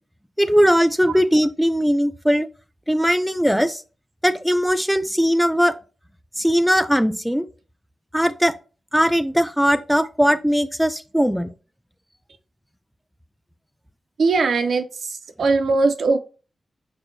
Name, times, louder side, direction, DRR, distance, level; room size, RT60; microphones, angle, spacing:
voice 1, 0.4-2.5 2.9-3.8 4.2-5.7 6.4-7.5 8.1-8.5 8.9-11.5, equal, ahead, 0.3 m, -19 dB
voice 2, 14.2-16.2, right 3 dB, 80° right, 0.4 m, -20 dB
6.1 x 2.2 x 2.6 m
cardioid pair, 65°, 0 cm